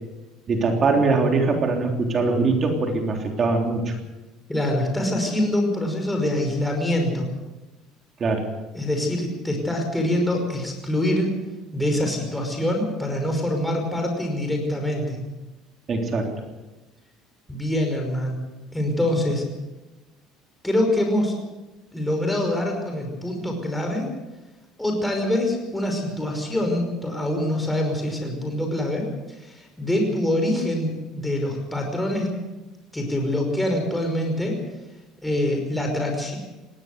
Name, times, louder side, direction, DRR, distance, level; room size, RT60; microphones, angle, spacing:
voice 1, 0.5-3.9 8.2-8.5 15.9-16.3, right 3 dB, 35° right, 3 dB, 3.5 m, -22 dB
voice 2, 4.5-7.3 8.7-11.3 11.7-15.2 17.5-18.4 18.7-19.5 20.6-21.4 21.9-24.1 24.8-29.1 29.4-32.3 32.9-34.6 35.2-36.4, left 1 dB, 5° left, 2 dB, 5.4 m, -25 dB
20.0 x 16.5 x 8.1 m, 1.1 s
cardioid pair, 120°, 0 cm